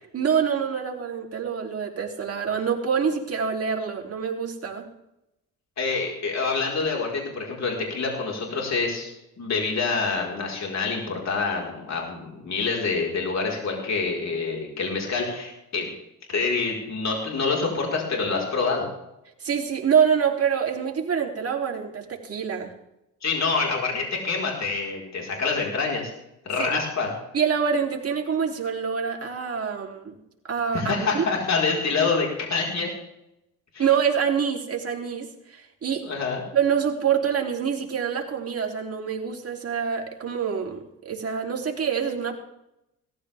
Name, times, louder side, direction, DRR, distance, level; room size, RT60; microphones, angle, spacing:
voice 1, 0.1-4.9 19.4-22.7 26.6-26.8 27.3-30.1 30.4-31.2 33.8-36.1 36.5-40.8 41.1-42.4, right 7 dB, 40° right, 0 dB, 3.5 m, -26 dB
voice 2, 5.8-9.1 9.4-15.9 16.3-18.9 23.2-26.1 26.4-27.1 30.7-32.9 33.7-33.8 36.0-36.4, left 4 dB, 50° left, -1 dB, 4.8 m, -26 dB
18.0 x 14.5 x 3.6 m, 0.86 s
cardioid pair, 80°, 36 cm